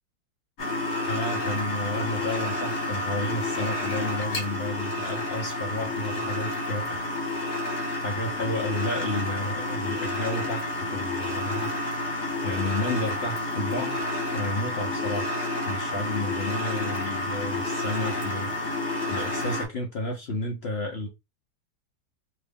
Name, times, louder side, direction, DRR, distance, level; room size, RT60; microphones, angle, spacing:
sound 1, 0.6-19.7, left 1 dB, 40° left, 1.2 m, -30 dB
voice 1, 1.1-7.7 7.9-11.7 12.4-14.0 14.3-15.3 15.6-21.1, left 1 dB, 70° left, 0.6 m, -32 dB
2.8 x 2.5 x 3.5 m
omnidirectional pair, 2.0 m